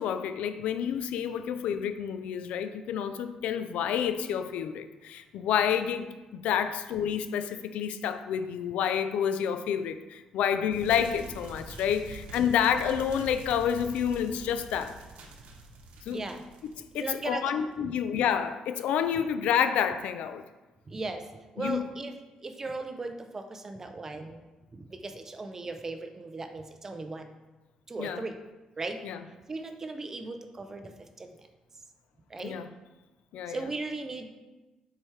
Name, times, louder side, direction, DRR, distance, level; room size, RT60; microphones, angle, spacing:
voice 1, 0.0-15.0 16.1-16.2 16.9-20.4 21.6-21.9 28.0-28.3 29.0-29.2 32.4-32.7 33.3-33.7, left 8 dB, 90° left, 10 dB, 0.4 m, -29 dB
sound 1, 10.7-17.5, right 2 dB, 85° right, 0.9 m, -46 dB
voice 2, 16.1-16.4 17.0-17.5 17.8-17.9 20.9-21.2 21.5-22.1 22.4-24.4 24.7-27.3 27.9-28.4 28.8-29.0 29.5-30.9 31.2-31.5 32.3-32.6 33.5-34.3, right 3 dB, 20° right, 6 dB, 0.5 m, -37 dB
7.3 x 4.7 x 3.2 m, 1.1 s
cardioid pair, 155°, 2 cm